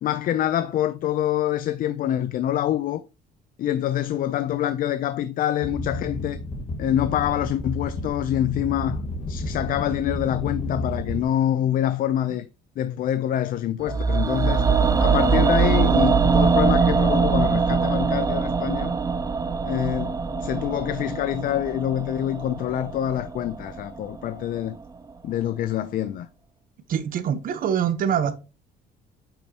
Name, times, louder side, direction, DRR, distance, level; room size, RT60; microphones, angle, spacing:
voice 1, 0.0-3.0 3.6-6.4 6.8-9.0 9.3-12.5 12.8-14.7 15.0-18.9 19.6-24.8 25.2-26.3, left 11 dB, 55° left, 0.5 m, -26 dB
sound 1, 5.6-11.2, left 1 dB, 35° left, 1.6 m, -31 dB
sound 2, 13.9-24.0 24.3-24.4, right 5 dB, 20° right, 0.5 m, -22 dB
voice 2, 26.9-28.3, right 8 dB, 55° right, 0.9 m, -24 dB
8.8 x 5.3 x 2.8 m
cardioid pair, 110°, 17 cm